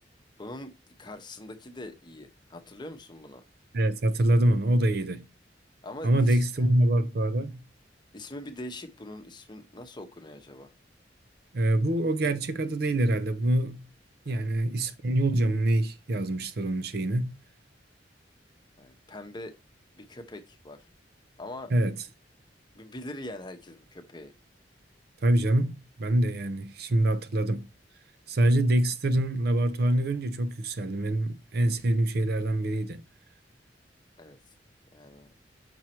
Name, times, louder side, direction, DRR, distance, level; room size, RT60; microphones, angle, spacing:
voice 1, 0.4-0.7 1.0-3.4 5.8-6.8 8.1-10.7 14.3-14.5 18.8-19.5 20.0-20.9 21.4-21.7 22.7-24.3 34.2-34.4 34.9-35.3, left 1 dB, 25° left, 0.9 m, -42 dB
voice 2, 3.7-5.3 6.0-7.6 11.5-13.9 14.3-17.4 21.7-22.0 25.2-27.7 28.3-33.0, right 1 dB, 60° right, 0.7 m, -25 dB
6.1 x 4.6 x 4.4 m
head